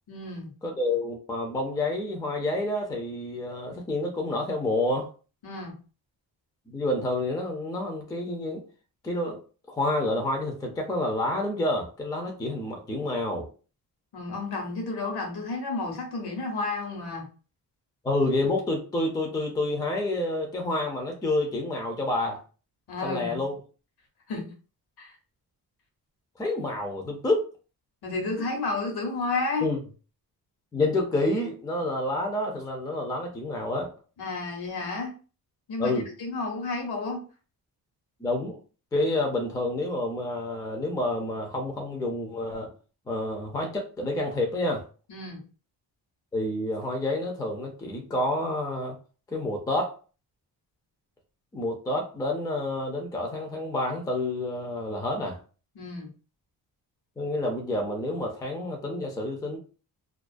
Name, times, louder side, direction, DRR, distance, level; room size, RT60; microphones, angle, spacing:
voice 1, 0.1-0.5 5.4-5.8 14.1-17.3 22.9-23.4 24.3-24.5 25.0-25.2 28.0-29.7 34.2-35.1 35.7-37.3 45.1-45.4 55.8-56.1, left 3 dB, 75° left, 0.9 m, -31 dB
voice 2, 0.6-5.1 6.7-8.6 9.0-9.4 9.7-13.5 18.0-22.4 23.0-23.5 26.4-27.4 29.6-29.8 30.7-33.9 35.8-36.0 38.2-38.6 38.9-42.7 43.1-44.8 46.3-49.0 49.3-49.9 51.5-55.4 57.2-59.6, left 2 dB, 10° left, 0.3 m, -28 dB
2.3 x 2.2 x 2.4 m
wide cardioid pair, 165°, 38 cm